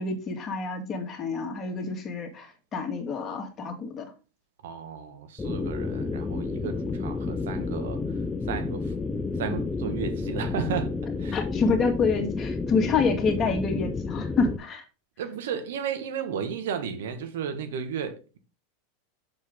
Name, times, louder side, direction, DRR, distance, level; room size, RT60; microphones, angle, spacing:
voice 1, 0.0-4.1 11.3-14.8, left 4 dB, 30° left, 2.1 m, -27 dB
voice 2, 4.6-8.0 8.5-8.9 9.4-10.9 11.2-11.4 15.2-18.4, right 7 dB, 75° right, 1.5 m, -33 dB
sound 1, 5.4-14.6, left 3 dB, 15° left, 0.8 m, -30 dB
7.0 x 6.4 x 3.7 m
hypercardioid pair, 95°, 0 cm